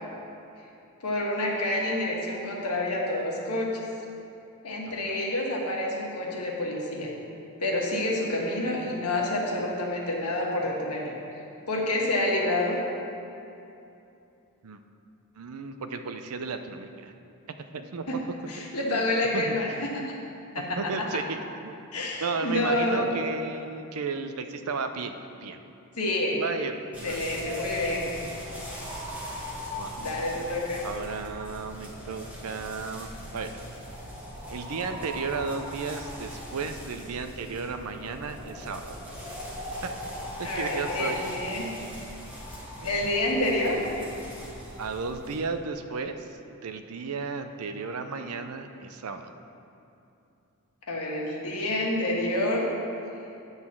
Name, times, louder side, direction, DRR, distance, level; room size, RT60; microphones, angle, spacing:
voice 1, 1.0-3.8 4.6-7.1 7.6-11.1 11.7-12.8 18.1-18.2 18.5-20.0 20.5-21.2 21.9-23.1 26.0-26.4 27.0-28.1 30.0-30.8 40.4-41.7 42.8-43.8 50.9-52.7, left 1 dB, 90° left, -2 dB, 1.5 m, -28 dB
voice 2, 15.3-17.1 17.7-18.1 18.6-19.6 20.7-21.8 22.2-25.1 25.4-25.6 26.4-27.2 28.5-28.6 29.7-30.0 30.8-33.5 34.5-39.0 39.8-39.9 40.4-41.2 42.8-43.1 44.8-46.4 46.6-49.3, right 4 dB, 75° right, 8 dB, 0.5 m, -34 dB
sound 1, 26.9-45.4, left 1 dB, 5° right, 1.6 m, -39 dB
9.8 x 4.0 x 7.2 m, 2.8 s
head